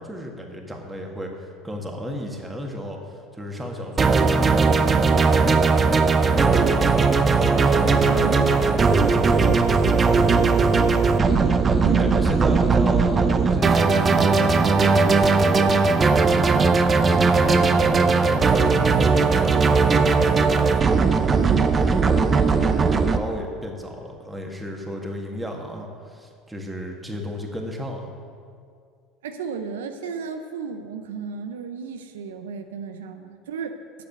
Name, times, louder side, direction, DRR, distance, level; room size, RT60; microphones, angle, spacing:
voice 1, 0.0-5.8 6.2-10.9 11.9-16.4 17.0-20.4 22.5-28.1, equal, 10° right, 1 dB, 1.8 m, -34 dB
sound 1, 4.0-23.2, right 4 dB, 30° right, 0.7 m, -18 dB
voice 2, 8.1-8.5 11.8-12.2 21.3-21.8 29.2-33.8, right 6 dB, 90° right, 7 dB, 0.6 m, -33 dB
8.3 x 6.8 x 8.1 m, 2.2 s
hypercardioid pair, 90°, 0 cm